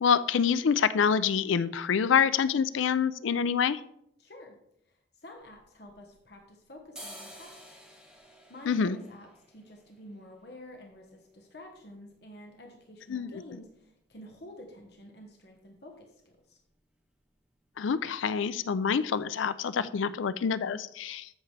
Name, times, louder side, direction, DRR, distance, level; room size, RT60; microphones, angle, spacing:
voice 1, 0.0-3.8 8.7-9.0 13.1-13.4 17.8-21.3, left 6 dB, 80° left, 15 dB, 0.4 m, -26 dB
voice 2, 4.2-4.6 4.8-7.7 8.2-16.6, left 1 dB, 55° left, 1 dB, 1.2 m, -50 dB
sound 1, 5.4-6.4 6.8-14.5 14.8-14.9 15.2-15.7 16.0-16.2 16.5-16.8 17.0-17.7 18.1-18.2 18.7-18.8 19.1-19.2, equal, 5° right, 1.2 m, -53 dB
13.5 x 6.0 x 3.3 m, 0.76 s
head